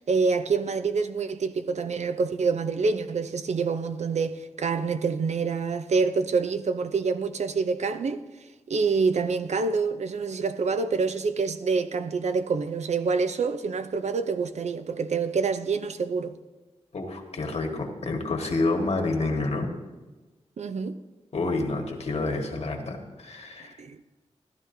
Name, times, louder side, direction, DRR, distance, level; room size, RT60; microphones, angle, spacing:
voice 1, 0.1-8.2 8.7-16.4 20.6-21.0 23.8-24.0, right 4 dB, 80° right, 0.6 m, -26 dB
voice 2, 16.9-19.7 21.3-23.8, left 3 dB, 65° left, 1.5 m, -28 dB
14.5 x 11.5 x 2.7 m
wide cardioid pair, 95°, 12 cm